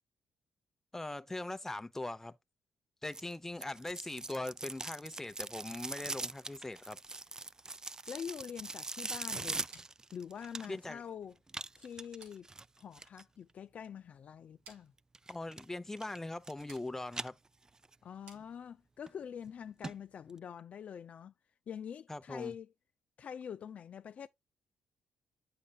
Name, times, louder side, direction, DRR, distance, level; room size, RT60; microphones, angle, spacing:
voice 1, 0.9-2.3 3.0-7.0 10.7-11.0 15.3-17.3 22.1-22.5, left 2 dB, 15° left, 0.8 m, -41 dB
sound 1, 3.1-10.9 11.5-13.2 15.1-15.6 16.0-16.8 17.1-17.9 18.3-18.4 19.1-19.2 19.5-19.6 19.8-19.9 20.3-20.4, right 3 dB, 25° right, 0.4 m, -42 dB
voice 2, 8.1-9.8 10.1-11.4 11.8-12.5 12.8-14.9 18.0-21.3 21.7-22.7 23.2-24.3, left 8 dB, 60° left, 0.4 m, -45 dB
sound 2, 9.7-19.1, right 4 dB, 90° right, 3.2 m, -63 dB
8.3 x 6.6 x 2.4 m
supercardioid pair, 55°, 3 cm